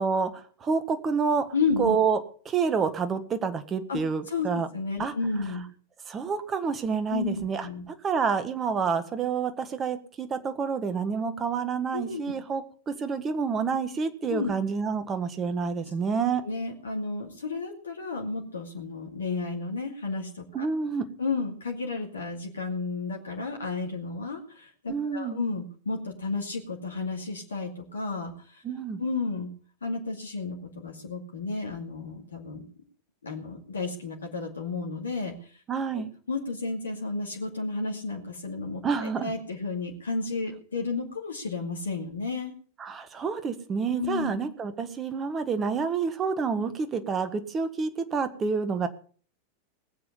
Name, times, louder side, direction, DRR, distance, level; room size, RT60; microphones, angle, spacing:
voice 1, 0.0-1.4 1.8-2.2 2.4-4.7 5.0-5.1 6.1-7.7 8.0-16.4 20.5-21.1 24.9-25.4 28.6-29.0 35.7-36.1 38.8-39.3 42.8-48.9, right 5 dB, 25° right, 10 dB, 1.7 m, -28 dB
voice 2, 1.5-2.0 3.9-4.0 4.3-4.5 4.7-5.7 7.1-7.9 11.9-12.2 14.3-14.5 16.4-20.7 21.2-28.6 29.0-29.5 29.8-32.6 33.2-35.6 35.9-42.5 43.9-44.3, left 4 dB, 70° left, 2 dB, 2.3 m, -32 dB
19.0 x 7.7 x 7.1 m, 0.43 s
figure-of-eight pair, 90°, 0 cm